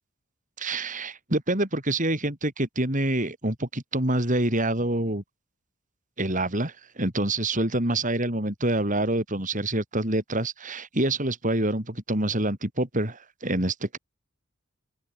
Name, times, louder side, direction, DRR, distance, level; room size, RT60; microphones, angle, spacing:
voice 1, 0.6-5.2 6.2-14.0, right 1 dB, 35° right, 4.2 m, -26 dB
open air
head